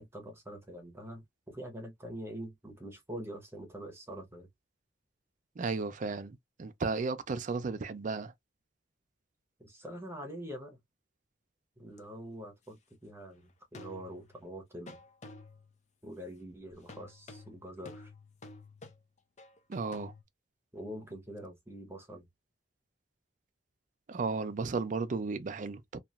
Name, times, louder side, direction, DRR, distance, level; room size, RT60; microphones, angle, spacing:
voice 1, 0.0-4.5 9.6-10.8 11.8-15.0 16.0-18.1 20.7-22.3, equal, 15° right, 0.8 m, -44 dB
voice 2, 5.6-8.3 19.7-20.1 24.1-26.0, right 4 dB, 45° right, 0.4 m, -34 dB
sound 1, 12.0-12.1 13.7-14.5 14.9-15.8 16.9-20.2, left 2 dB, 40° left, 0.6 m, -51 dB
2.9 x 2.3 x 2.4 m
head